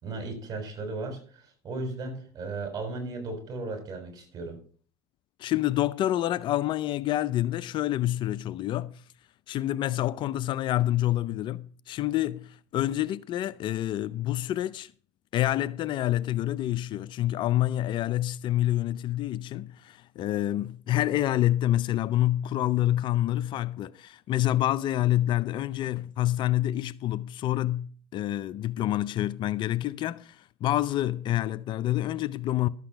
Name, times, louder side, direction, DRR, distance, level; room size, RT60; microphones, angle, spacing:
voice 1, 0.0-4.6, right 3 dB, 35° right, 6.7 m, -36 dB
voice 2, 5.4-9.0 9.5-14.9 15.3-32.7, left 13 dB, 55° left, 0.5 m, -27 dB
12.5 x 8.3 x 5.8 m
supercardioid pair, 90°, 10 cm